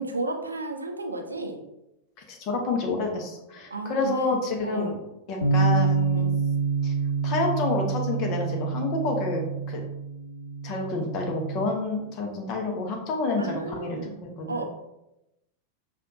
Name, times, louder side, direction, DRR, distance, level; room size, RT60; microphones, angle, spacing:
voice 1, 0.0-1.6 3.7-4.9 13.4-14.2 14.5-14.6, right 2 dB, 80° right, 5 dB, 0.4 m, -33 dB
voice 2, 2.3-5.0 5.3-6.3 6.8-6.9 7.2-9.8 10.6-14.6, left 3 dB, 40° left, 2 dB, 0.9 m, -29 dB
Bass guitar, 5.4-11.7, right 4 dB, 85° left, 0.6 m, -27 dB
5.6 x 2.4 x 2.6 m, 0.89 s
figure-of-eight pair, 90°, 0 cm